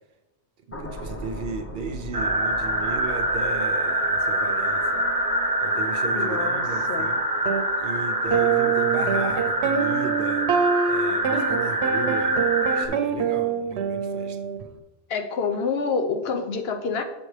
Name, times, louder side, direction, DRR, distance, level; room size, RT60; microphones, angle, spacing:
sound 1, 0.7-7.0 7.4-7.7, equal, 20° left, 0.4 m, -40 dB
voice 1, 0.7-5.1 5.6-7.2 7.8-14.5, right 4 dB, 60° right, 7 dB, 0.6 m, -35 dB
sound 2, 2.1-12.9, right 1 dB, 25° right, 0.6 m, -25 dB
voice 2, 6.1-7.1 15.1-17.0, left 5 dB, 75° left, 6 dB, 0.9 m, -27 dB
sound 3, 7.5-7.6 8.3-14.6, right 7 dB, 85° right, 0.9 m, -25 dB
6.8 x 6.5 x 3.2 m, 1.0 s
omnidirectional pair, 1.1 m